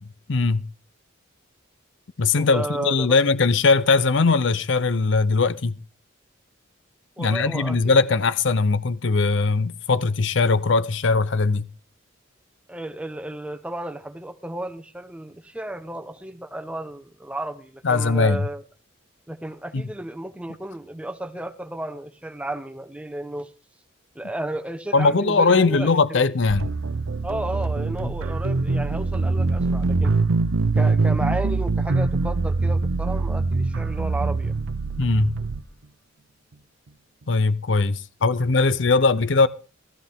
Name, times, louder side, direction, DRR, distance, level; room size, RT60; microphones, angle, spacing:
voice 1, 0.3-0.7 2.2-5.8 7.2-11.7 17.8-18.4 19.7-19.9 24.9-26.7 28.0-28.1 35.0-35.3 37.3-39.5, left 4 dB, 65° left, 0.6 m, -20 dB
voice 2, 2.4-3.2 7.2-8.0 12.7-18.6 19.3-23.5 24.1-26.2 27.2-30.2 30.7-34.6, right 1 dB, 5° right, 1.0 m, -33 dB
sound 1, 26.5-35.6, right 3 dB, 85° right, 0.7 m, -23 dB
16.0 x 13.5 x 3.7 m
head